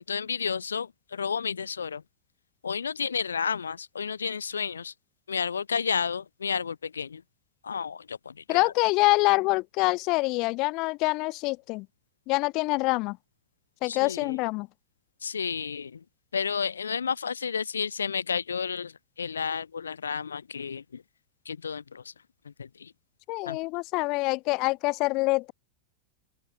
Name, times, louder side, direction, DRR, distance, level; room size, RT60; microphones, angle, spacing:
voice 1, 0.0-2.0 2.6-4.9 5.3-7.2 7.6-8.6 13.8-14.4 15.2-16.0 16.3-18.9 19.2-21.0 21.5-22.0 22.6-22.9 23.5-23.6, left 6 dB, 70° left, 1.1 m, -31 dB
voice 2, 8.5-11.9 12.3-13.2 13.8-14.7 23.3-25.5, left 24 dB, 40° left, 1.1 m, -25 dB
open air
figure-of-eight pair, 90°, 0 cm